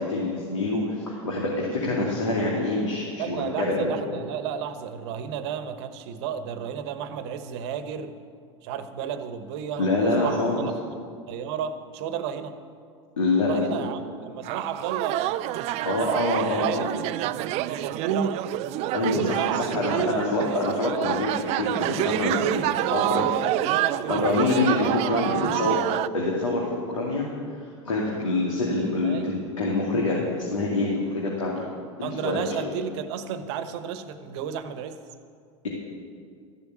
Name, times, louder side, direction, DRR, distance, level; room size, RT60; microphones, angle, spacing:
voice 1, 0.0-3.9 9.8-10.6 13.2-13.8 15.8-16.9 18.9-19.4 19.7-23.2 24.1-25.8 26.1-27.2 27.6-31.6 32.0-32.7, left 2 dB, 90° left, -4 dB, 2.5 m, -26 dB
voice 2, 3.2-8.1 8.6-10.7 11.3-12.6 13.4-15.4 15.8-17.1 17.5-18.4 19.0-20.6 22.3-24.4 24.7-25.8 29.0-29.4 32.0-35.0, right 8 dB, 60° right, 10 dB, 1.2 m, -32 dB
sound 1, 14.4-26.1, right 15 dB, 45° right, 0.4 m, -28 dB
14.0 x 7.1 x 9.2 m, 2.2 s
hypercardioid pair, 95°, 16 cm